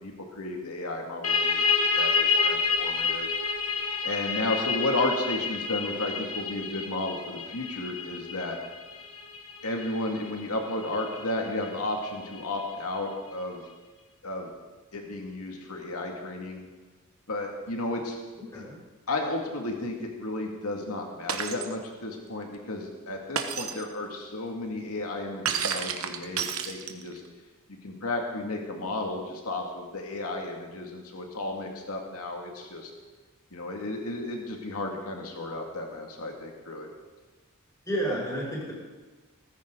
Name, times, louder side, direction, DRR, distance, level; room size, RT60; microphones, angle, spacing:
voice 1, 0.0-3.3 4.0-8.6 9.6-13.6 14.2-14.5 14.9-16.6 17.3-18.2 18.5-18.6 19.1-27.2 27.8-32.9 33.5-36.9, left 2 dB, 85° left, 1 dB, 2.2 m, -33 dB
sound 1, 1.2-12.6, left 5 dB, 70° left, 1.7 m, -29 dB
Shatter, 21.3-21.7 23.4-23.8 25.5-27.2, right 7 dB, 70° right, 1.2 m, -30 dB
voice 2, 37.8-38.7, right 1 dB, 15° left, -5 dB, 4.9 m, -30 dB
18.0 x 14.5 x 3.9 m, 1.3 s
head